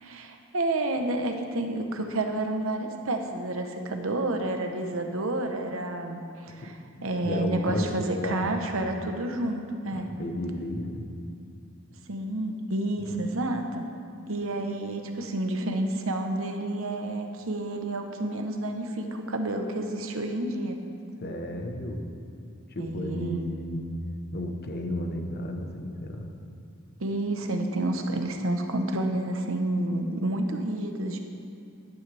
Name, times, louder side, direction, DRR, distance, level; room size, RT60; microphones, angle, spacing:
voice 1, 0.0-6.8 7.0-10.1 12.1-13.8 14.3-20.7 22.8-23.5 27.0-31.2, right 1 dB, 70° right, 4 dB, 1.0 m, -30 dB
voice 2, 6.5-7.9 8.2-8.6 9.9-11.1 13.0-13.2 21.2-22.1 22.7-23.8 24.3-26.3, left 1 dB, 50° left, 4 dB, 1.1 m, -33 dB
13.0 x 12.0 x 3.4 m, 2.5 s
head